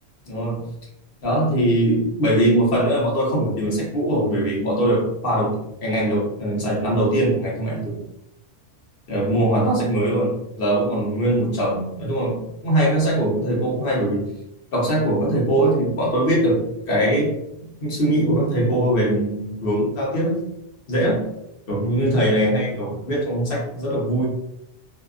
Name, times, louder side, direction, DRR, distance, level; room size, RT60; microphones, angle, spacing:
voice 1, 0.2-0.6 1.2-8.0 9.1-14.3 14.7-17.3 17.8-20.5 20.9-21.3 21.7-24.3, right 1 dB, 55° left, -3 dB, 1.0 m, -21 dB
2.7 x 2.4 x 2.4 m, 0.79 s
omnidirectional pair, 1.2 m